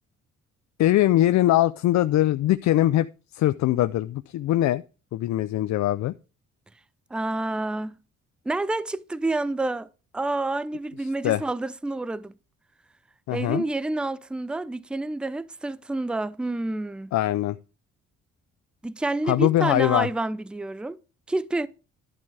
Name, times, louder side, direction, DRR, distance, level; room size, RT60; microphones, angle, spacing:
voice 1, 0.8-3.1 3.3-4.8 5.1-6.1 11.2-11.4 13.3-13.6 17.1-17.6 19.3-20.1, left 14 dB, 65° left, 0.5 m, -22 dB
voice 2, 7.1-8.0 8.5-9.9 10.1-12.3 13.3-17.1 18.8-21.0 21.3-21.7, right 2 dB, 5° right, 0.4 m, -28 dB
11.5 x 7.2 x 3.3 m
cardioid pair, 90°, 30 cm